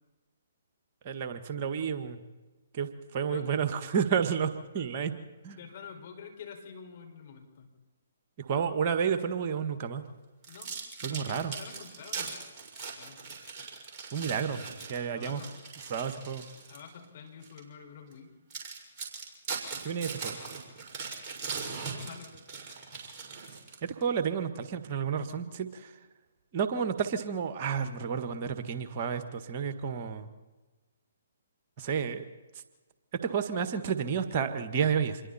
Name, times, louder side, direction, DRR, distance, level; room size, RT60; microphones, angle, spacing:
voice 1, 1.0-2.2 2.7-5.1 5.4-5.6 8.4-10.0 11.0-11.5 14.1-15.4 15.9-16.4 19.8-20.4 23.8-25.9 26.5-30.3 31.8-32.2 33.2-35.2, right 7 dB, 40° right, 9 dB, 1.7 m, -31 dB
voice 2, 5.5-7.7 10.4-10.7 11.0-12.3 12.9-13.2 15.2-15.5 16.7-18.3 21.9-22.4, left 6 dB, 50° left, 2 dB, 5.6 m, -47 dB
sound 1, 10.4-16.9 17.4-17.6 18.1-18.2 18.5-24.0, right 5 dB, 25° right, 6.0 m, -40 dB
27.0 x 22.5 x 4.4 m, 1.2 s
figure-of-eight pair, 135°, 0 cm